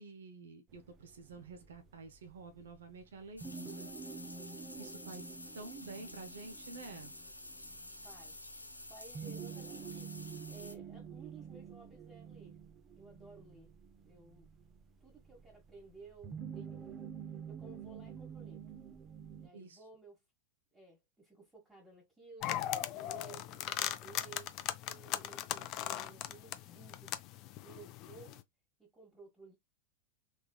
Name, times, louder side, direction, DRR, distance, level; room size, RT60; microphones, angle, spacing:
voice 1, 0.0-3.9 4.5-5.3 5.5-7.1 19.5-19.8, right 3 dB, 65° right, 0.7 m, -50 dB
sound 1, 0.7-19.5, right 7 dB, 25° right, 0.6 m, -49 dB
sound 2, 3.4-10.7, left 2 dB, 85° left, 0.6 m, -50 dB
voice 2, 4.7-5.2 8.0-12.6 13.0-13.7 14.0-14.5 15.0-17.0 17.5-18.7 19.4-20.2 20.7-24.5 24.9-27.2 27.6-28.4 28.8-29.6, right 4 dB, 10° right, 1.4 m, -56 dB
sound 3, 22.4-28.4, left 13 dB, 40° left, 0.4 m, -39 dB
3.6 x 3.4 x 2.2 m
figure-of-eight pair, 90°, 0 cm